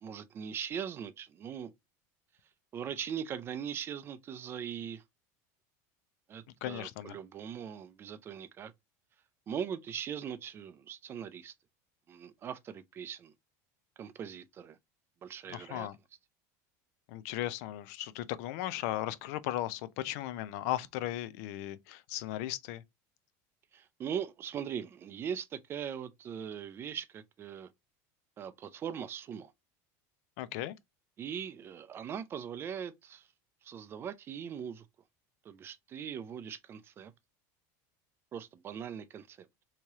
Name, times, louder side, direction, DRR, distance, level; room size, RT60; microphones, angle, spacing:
voice 1, 0.0-1.7 2.7-5.0 6.3-8.7 9.5-11.5 12.1-13.3 14.0-14.8 15.2-15.9 23.7-27.7 28.4-29.5 31.2-33.3 33.6-34.8 35.4-37.1 38.3-39.5, right 8 dB, 25° right, 0.4 m, -40 dB
voice 2, 6.6-7.2 15.5-16.0 17.1-22.8 30.4-30.8, left 14 dB, 65° left, 0.4 m, -36 dB
3.1 x 2.8 x 3.5 m
supercardioid pair, 145°, 9 cm